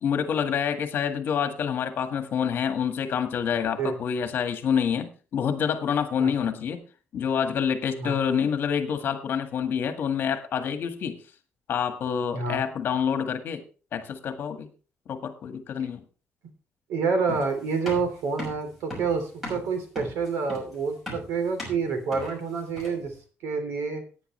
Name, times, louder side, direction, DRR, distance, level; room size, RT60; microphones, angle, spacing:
voice 1, 0.0-6.8 7.1-11.2 11.7-13.6 13.9-14.7 15.1-16.0, left 7 dB, 50° left, 7 dB, 1.7 m, -27 dB
voice 2, 12.3-12.6 16.9-23.1 23.4-24.0, right 5 dB, 90° right, 7 dB, 3.3 m, -28 dB
sound 1, 17.3-23.1, left 1 dB, 5° right, 6.2 m, -38 dB
17.5 x 9.6 x 3.2 m, 0.35 s
cardioid pair, 180°, 4 cm